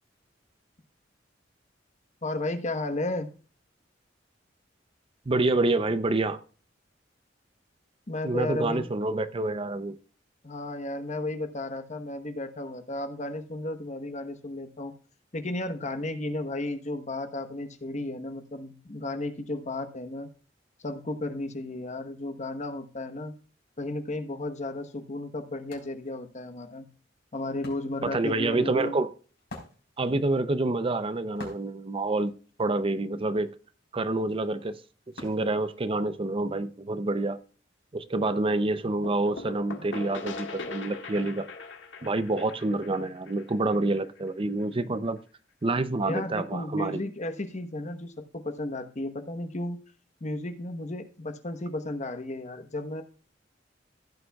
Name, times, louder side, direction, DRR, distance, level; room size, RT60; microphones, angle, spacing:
voice 1, 2.2-3.3 8.1-8.9 10.4-14.9 15.3-20.3 20.8-23.3 23.8-26.9 27.3-29.0 46.0-49.8 50.2-53.0, left 2 dB, 40° left, 1.1 m, -34 dB
voice 2, 5.3-6.4 8.2-10.0 28.0-29.1 30.0-32.3 32.6-33.5 33.9-34.8 35.2-37.4 37.9-41.5 42.0-45.2 45.6-47.0, right 2 dB, 30° right, 0.5 m, -27 dB
Wood, 25.1-36.3, left 2 dB, 65° left, 4.0 m, -50 dB
sound 1, 39.0-44.6, left 3 dB, 85° left, 1.7 m, -41 dB
15.5 x 8.7 x 2.3 m
head